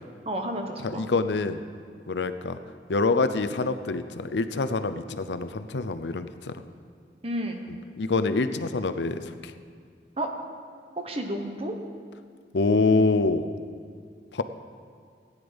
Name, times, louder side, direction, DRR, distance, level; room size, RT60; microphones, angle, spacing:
voice 1, 0.2-1.0 7.2-7.6 10.2-10.3 10.9-11.7, right 1 dB, 35° right, 4 dB, 1.2 m, -31 dB
voice 2, 0.8-1.6 2.1-2.6 2.9-6.5 8.0-9.5 12.5-13.5 14.3-14.4, left 3 dB, 85° left, 11 dB, 0.6 m, -25 dB
16.0 x 9.9 x 5.2 m, 2.1 s
head